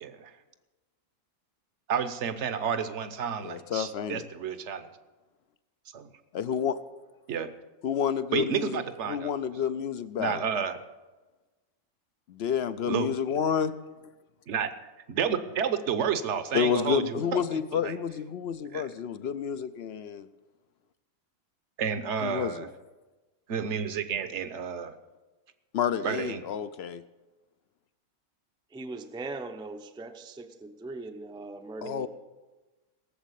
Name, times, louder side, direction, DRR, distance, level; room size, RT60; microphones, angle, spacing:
voice 1, 0.0-0.3 1.9-4.9 5.9-6.1 7.3-7.5 8.3-9.3 10.2-10.8 12.9-13.1 14.5-14.7 15.1-17.4 17.8-17.9 18.7-18.8 21.8-22.7 23.5-24.9 26.0-26.4, right 7 dB, 60° right, 11 dB, 1.1 m, -30 dB
voice 2, 3.4-4.2 6.3-6.8 7.8-10.4 12.3-13.7 16.5-20.3 22.2-22.7 25.7-27.0 31.8-32.1, left 8 dB, 60° left, 13 dB, 0.7 m, -29 dB
voice 3, 28.7-32.1, right 3 dB, 5° right, 6 dB, 0.5 m, -40 dB
18.0 x 7.4 x 8.3 m, 1.2 s
omnidirectional pair, 1.5 m